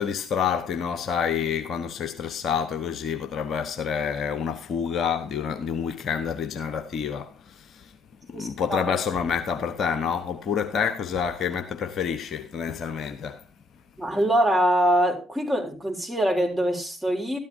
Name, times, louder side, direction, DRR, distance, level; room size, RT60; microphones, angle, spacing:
voice 1, 0.0-8.0 8.3-13.4, left 7 dB, 50° left, 0.9 m, -28 dB
voice 2, 8.3-8.8 14.0-17.4, right 1 dB, 5° right, 3.3 m, -23 dB
13.0 x 11.0 x 2.7 m
figure-of-eight pair, 50°, 0 cm